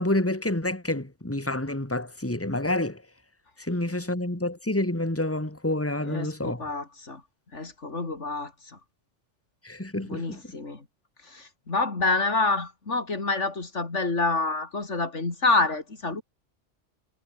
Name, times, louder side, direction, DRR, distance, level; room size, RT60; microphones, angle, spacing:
voice 1, 0.0-3.0 3.6-6.6 9.6-10.4, left 1 dB, 10° left, 2.7 m, -28 dB
voice 2, 6.0-7.2 7.5-8.5 10.0-10.9 11.2-16.2, left 3 dB, 85° left, 3.5 m, -27 dB
omnidirectional pair, 1.2 m